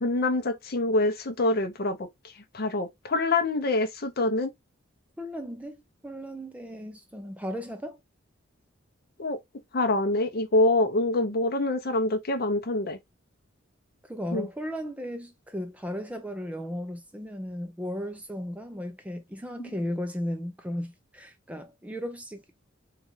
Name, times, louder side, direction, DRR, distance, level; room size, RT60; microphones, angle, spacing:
voice 1, 0.0-4.5 9.2-9.4 9.7-13.0 14.3-14.5 19.6-19.7, left 2 dB, 45° left, 0.7 m, -26 dB
voice 2, 5.2-8.0 14.0-22.4, equal, 5° right, 0.4 m, -35 dB
3.7 x 2.3 x 3.0 m
head